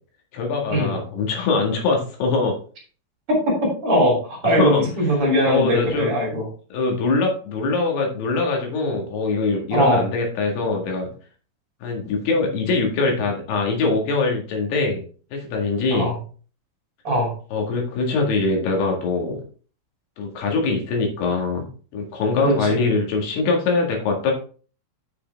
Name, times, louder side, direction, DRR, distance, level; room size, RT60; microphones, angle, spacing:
voice 1, 0.3-2.6 4.4-4.8 5.4-6.1 6.7-11.1 11.8-15.0 15.3-16.1 17.5-19.4 20.2-21.7 21.9-24.3, left 3 dB, 65° left, 1 dB, 3.7 m, -23 dB
voice 2, 3.8-6.5 9.7-10.0 15.9-16.2 17.0-17.3 22.4-22.9, equal, 35° right, -2 dB, 3.3 m, -20 dB
8.2 x 6.6 x 3.5 m, 0.39 s
omnidirectional pair, 5.6 m